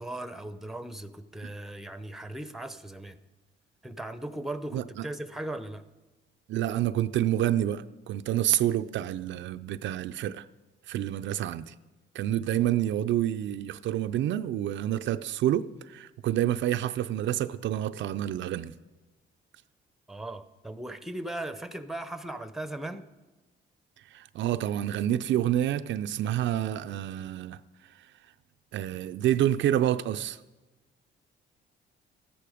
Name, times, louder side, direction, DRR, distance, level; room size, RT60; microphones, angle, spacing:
voice 1, 0.0-3.2 3.8-5.8 20.1-23.1, right 1 dB, ahead, 11 dB, 0.7 m, -38 dB
voice 2, 4.7-5.1 6.5-10.5 10.9-11.7 12.1-18.7 24.1-27.6 28.7-30.4, right 12 dB, 70° right, 10 dB, 0.5 m, -28 dB
13.5 x 10.0 x 5.0 m, 1.1 s
cardioid pair, 90°, 20 cm